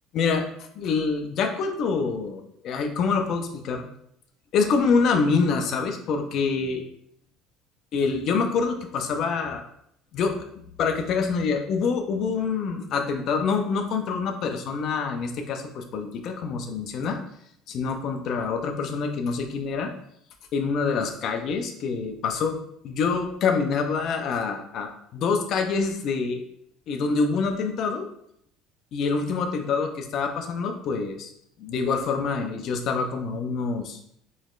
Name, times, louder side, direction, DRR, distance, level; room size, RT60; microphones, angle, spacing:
voice 1, 0.1-0.5 0.7-3.8 4.5-6.8 7.9-9.6 10.1-10.3 10.8-17.2 17.7-19.9 20.5-22.6 22.8-26.4 26.9-28.1 28.9-31.3 31.6-34.0, left 5 dB, 55° left, 5 dB, 0.5 m, -26 dB
3.9 x 3.1 x 2.4 m, 0.72 s
cardioid pair, 115°, 0 cm